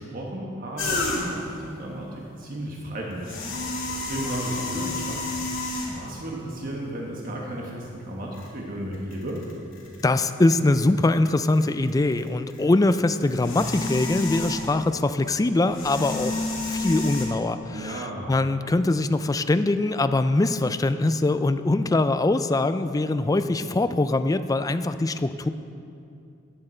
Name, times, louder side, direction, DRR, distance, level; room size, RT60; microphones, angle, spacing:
voice 1, 0.0-9.4 17.7-18.3, right 1 dB, 45° right, -2 dB, 1.4 m, -34 dB
sound 1, 0.8-1.5 3.1-6.2 7.0-7.1 8.3-8.5 8.9-11.3 11.6-14.9 15.6-17.3, left 2 dB, 70° left, 2.7 m, -30 dB
voice 2, 10.0-16.4 16.7-25.5, left 2 dB, 20° left, 11 dB, 0.4 m, -23 dB
14.5 x 9.6 x 4.4 m, 2.6 s
head